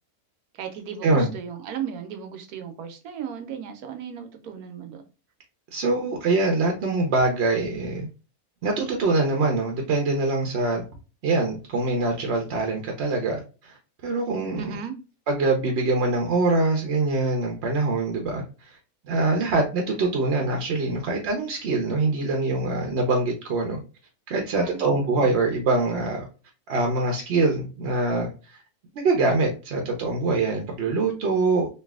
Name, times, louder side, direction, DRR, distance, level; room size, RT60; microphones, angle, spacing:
voice 1, 0.6-5.0 14.6-14.9 24.6-25.0, right 8 dB, 90° right, 1.1 m, -36 dB
voice 2, 5.7-8.1 8.6-10.8 11.2-13.8 14.0-14.8 15.3-18.8 19.1-23.8 24.3-26.3 26.7-28.6 28.9-31.7, right 3 dB, 60° right, 0.7 m, -24 dB
3.2 x 2.6 x 2.2 m
omnidirectional pair, 1.5 m